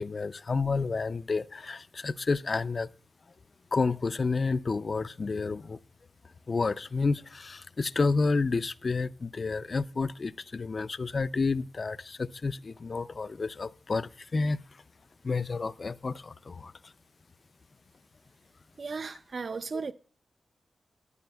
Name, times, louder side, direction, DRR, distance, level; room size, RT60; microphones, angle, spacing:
voice 1, 0.0-2.9 3.7-5.8 6.5-14.6 15.2-16.7, left 4 dB, 35° left, 0.3 m, -30 dB
voice 2, 18.8-19.9, right 4 dB, 45° right, 0.4 m, -35 dB
13.0 x 10.0 x 2.2 m
wide cardioid pair, 155°, 0 cm